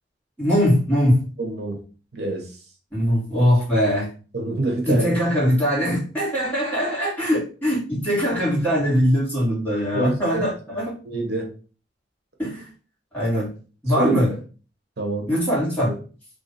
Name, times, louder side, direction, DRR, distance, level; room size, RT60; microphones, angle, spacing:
voice 1, 0.4-1.2 2.9-4.1 4.9-10.9 12.4-12.7 13.1-13.5 13.8-14.3 15.3-15.9, equal, 10° left, -7 dB, 1.9 m, -21 dB
voice 2, 1.4-1.8 2.1-2.5 4.3-5.2 9.9-10.5 11.0-11.5 14.0-14.3 15.0-15.3 15.9-16.0, right 2 dB, 60° right, 2 dB, 0.9 m, -26 dB
3.2 x 2.6 x 4.0 m, 0.36 s
head